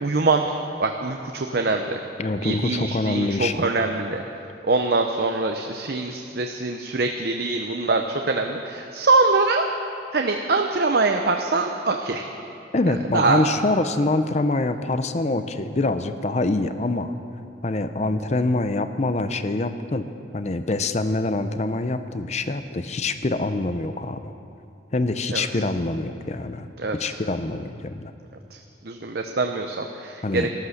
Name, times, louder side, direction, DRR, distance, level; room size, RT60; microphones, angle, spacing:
voice 1, 0.0-2.0 2.4-4.2 4.6-9.6 10.1-12.3 13.1-13.4 25.3-25.5 26.8-27.2 28.8-30.4, right 3 dB, 55° right, 4 dB, 0.7 m, -23 dB
voice 2, 2.2-3.7 12.7-17.1 17.6-20.1 20.3-24.2 24.9-26.7 26.9-28.1 30.2-30.5, left 2 dB, 35° left, 10 dB, 0.6 m, -25 dB
13.5 x 12.5 x 6.5 m, 2.6 s
head